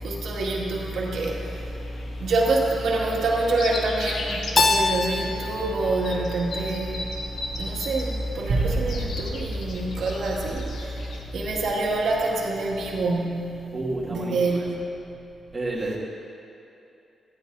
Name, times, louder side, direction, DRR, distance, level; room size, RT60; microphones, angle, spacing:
voice 1, 0.0-1.7 2.2-7.0 7.5-10.9 11.3-13.6 14.0-14.8, right 2 dB, 75° right, -4 dB, 2.1 m, -26 dB
sound 1, 0.9-11.2, left 2 dB, 75° left, 1.4 m, -39 dB
Keyboard (musical), 4.6-7.4, left 3 dB, 30° left, 0.7 m, -26 dB
sound 2, 8.5-11.0, right 3 dB, 60° right, 2.1 m, -30 dB
voice 2, 13.7-14.7 15.5-16.0, right 2 dB, 15° right, -5 dB, 2.0 m, -30 dB
18.0 x 14.0 x 2.7 m, 2.8 s
wide cardioid pair, 150°, 0 cm